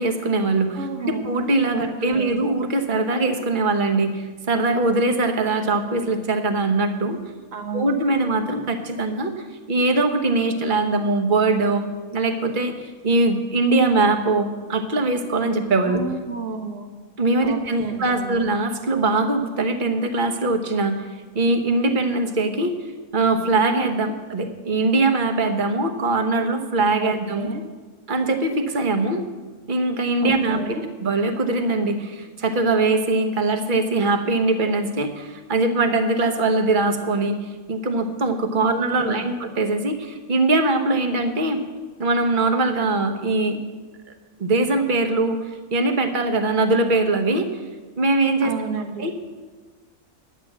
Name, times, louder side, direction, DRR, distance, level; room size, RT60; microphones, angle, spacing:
voice 1, 0.0-7.2 7.7-11.8 12.1-16.0 17.2-21.1 21.3-22.8 23.1-27.5 28.1-29.2 29.7-30.8 31.0-37.4 37.7-41.6 42.0-43.6 44.4-47.5 48.0-48.5 49.0-49.2, right 2 dB, 35° right, 6 dB, 1.1 m, -22 dB
voice 2, 0.8-1.2 1.7-2.3 7.5-7.9 15.8-16.9 17.4-18.4 27.0-27.6 30.2-30.8 38.5-39.3 48.4-49.0, right 4 dB, 60° right, 5 dB, 1.5 m, -31 dB
10.5 x 9.3 x 7.4 m, 1.4 s
omnidirectional pair, 1.5 m